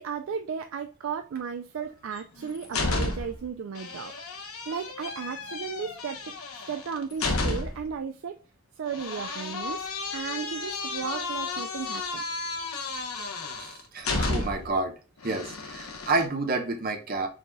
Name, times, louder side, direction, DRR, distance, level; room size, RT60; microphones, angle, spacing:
voice 1, 0.0-4.1 4.7-6.3 6.7-8.4 8.8-9.9 10.1-12.2, right 6 dB, 60° right, 7 dB, 0.3 m, -35 dB
sound 1, 2.1-3.4 3.8-7.9 8.9-14.8 15.2-16.3, left 3 dB, 75° left, 0.9 m, -32 dB
voice 2, 13.6-14.9 15.2-17.3, right 3 dB, 40° right, 4 dB, 0.9 m, -29 dB
4.8 x 3.9 x 2.3 m, 0.33 s
head